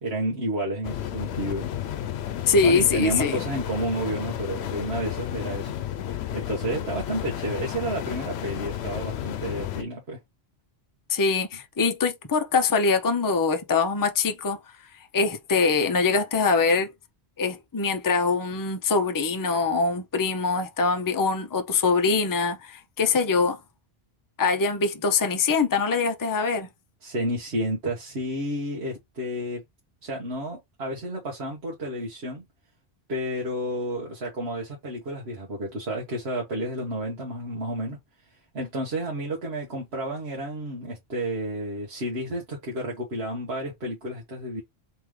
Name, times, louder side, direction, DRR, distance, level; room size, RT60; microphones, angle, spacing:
voice 1, 0.0-1.7 2.6-5.7 6.3-10.2 27.0-29.6 30.0-32.4 33.1-38.0 38.5-44.6, right 1 dB, 85° right, 1.5 m, -31 dB
sound 1, 0.8-9.8, left 11 dB, 85° left, 0.9 m, -32 dB
voice 2, 2.5-3.4 11.1-14.6 15.1-16.9 17.4-23.6 24.4-26.7, left 4 dB, 25° left, 0.6 m, -23 dB
3.6 x 3.5 x 3.1 m
omnidirectional pair, 1.1 m